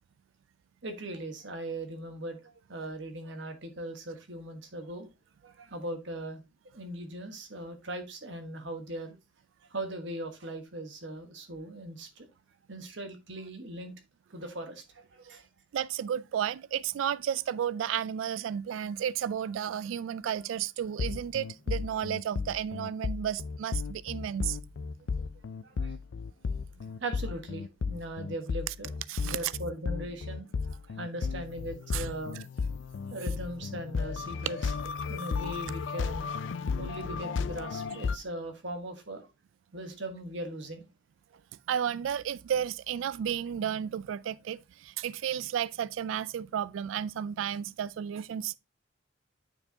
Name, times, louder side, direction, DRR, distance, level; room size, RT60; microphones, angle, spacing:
voice 1, 0.8-5.1 5.4-6.4 6.7-9.1 9.7-12.3 12.7-13.9 14.3-15.5 25.2-25.3 25.6-25.9 27.0-28.9 29.2-32.4 33.1-36.3 36.8-39.3 39.7-40.9, right 1 dB, 65° right, 1.3 m, -39 dB
voice 2, 15.7-24.6 28.7-28.8 29.1-29.5 31.9-32.1 41.7-48.5, right 9 dB, 80° right, 0.3 m, -32 dB
sound 1, 21.0-38.2, left 5 dB, 65° left, 0.4 m, -34 dB
8.7 x 4.7 x 2.7 m
head